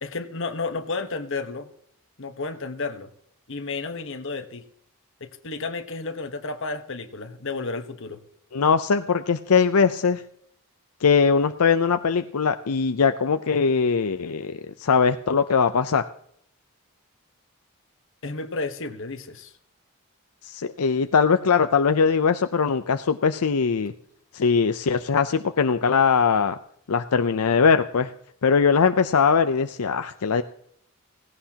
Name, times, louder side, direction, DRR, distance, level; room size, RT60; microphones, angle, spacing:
voice 1, 0.0-1.7 2.2-3.1 3.5-4.6 5.2-8.2 18.2-19.5, left 3 dB, 55° left, 8 dB, 1.2 m, -32 dB
voice 2, 8.5-10.2 11.0-16.1 20.4-23.9 24.3-26.6 26.9-28.1 28.4-30.4, left 5 dB, 80° left, 9 dB, 0.6 m, -21 dB
17.0 x 17.0 x 2.9 m, 0.68 s
head